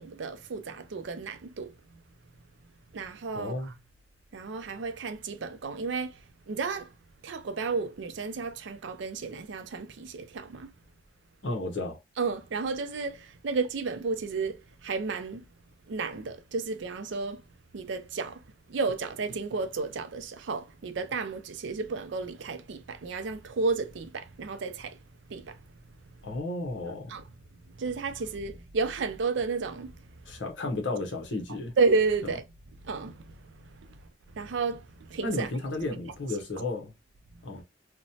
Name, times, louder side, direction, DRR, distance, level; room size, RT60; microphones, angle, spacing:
voice 1, 0.0-1.7 2.9-3.5 4.3-6.2 6.5-6.9 7.2-10.7 12.2-15.4 15.9-17.4 17.7-18.4 18.7-25.0 25.3-25.6 27.1-27.2 27.8-29.9 31.8-32.4 32.8-33.5 34.3-35.5 35.9-36.0, right 4 dB, 75° right, 0.4 m, -32 dB
voice 2, 3.3-3.7 11.4-12.0 26.2-27.1 30.3-31.7 32.2-32.4 35.2-36.9 37.4-37.6, left 2 dB, 75° left, 0.8 m, -33 dB
2.9 x 2.1 x 2.7 m
head